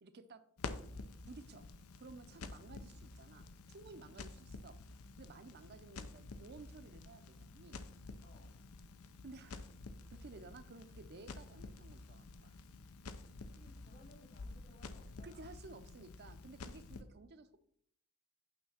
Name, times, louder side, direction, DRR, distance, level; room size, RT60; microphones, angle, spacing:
voice 1, 0.0-0.4 1.3-1.7 2.0-4.8 5.2-7.8 9.2-9.7 10.1-12.6 15.2-17.6, right 3 dB, 50° right, 10 dB, 0.6 m, -55 dB
Crackle, 0.6-17.0, left 3 dB, 80° left, 0.6 m, -50 dB
voice 2, 8.2-8.6 13.4-15.6, left 1 dB, 45° left, -1 dB, 1.4 m, -64 dB
8.8 x 3.4 x 5.7 m, 0.66 s
head